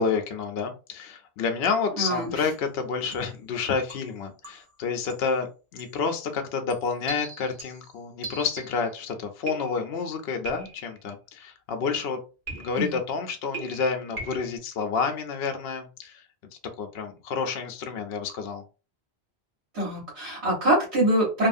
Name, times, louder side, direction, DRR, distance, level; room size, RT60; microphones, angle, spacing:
voice 1, 0.0-5.5 5.7-12.2 12.6-16.2 16.8-18.6, left 5 dB, 75° left, 5 dB, 0.8 m, -29 dB
voice 2, 2.0-2.4 12.8-12.9 19.7-21.5, right 1 dB, 80° right, -5 dB, 1.5 m, -24 dB
sound 1, 2.4-2.7 3.1-3.4 3.9-4.8 5.1-5.4 5.8-6.0 6.7-9.0 9.5-10.0 10.5-11.0 12.5-13.0 13.5-14.6, right 3 dB, 50° right, 1.2 m, -41 dB
2.7 x 2.4 x 2.6 m, 0.32 s
omnidirectional pair, 1.1 m